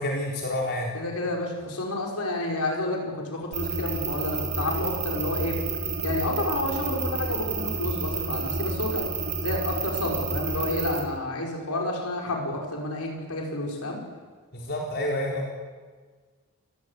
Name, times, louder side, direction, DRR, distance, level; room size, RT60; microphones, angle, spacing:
voice 1, 0.0-0.9 14.5-15.5, left 1 dB, 50° left, -1 dB, 4.2 m, -28 dB
voice 2, 0.9-5.6 6.0-9.1 9.4-14.0, left 2 dB, 80° left, 0 dB, 5.2 m, -30 dB
sound 1, 3.5-11.0, right 4 dB, 35° right, 5.2 m, -30 dB
28.5 x 20.0 x 8.3 m, 1.5 s
head